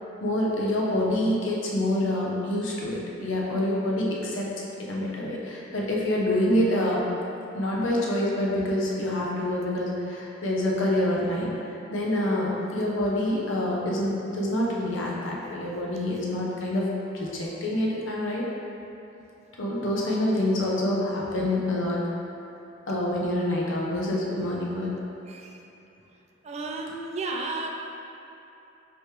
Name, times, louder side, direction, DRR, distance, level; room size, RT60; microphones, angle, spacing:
voice 1, 0.2-4.5 4.8-7.0 7.5-11.5 11.9-16.9 17.1-18.5 19.6-22.0 22.9-24.9, left 1 dB, 75° left, -4 dB, 0.7 m, -26 dB
voice 2, 25.3-25.6 26.4-27.7, right 3 dB, 35° right, 1 dB, 0.3 m, -33 dB
4.8 x 3.0 x 3.2 m, 2.9 s
head